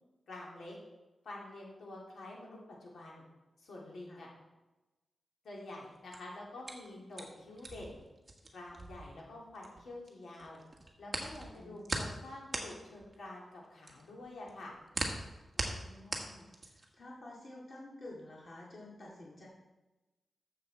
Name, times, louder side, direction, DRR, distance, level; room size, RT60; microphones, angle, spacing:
voice 1, 0.3-0.7 1.2-3.2 3.6-4.3 5.4-8.0 8.5-10.6 11.0-14.7, left 2 dB, 75° left, -3 dB, 3.4 m, -48 dB
sound 1, 5.9-10.1 10.4-17.0, right 2 dB, 25° right, 1.6 m, -40 dB
voice 2, 11.5-12.0 15.5-19.5, left 1 dB, 40° left, -4 dB, 2.2 m, -51 dB
13.5 x 7.3 x 4.5 m, 1.1 s
wide cardioid pair, 155°, 0 cm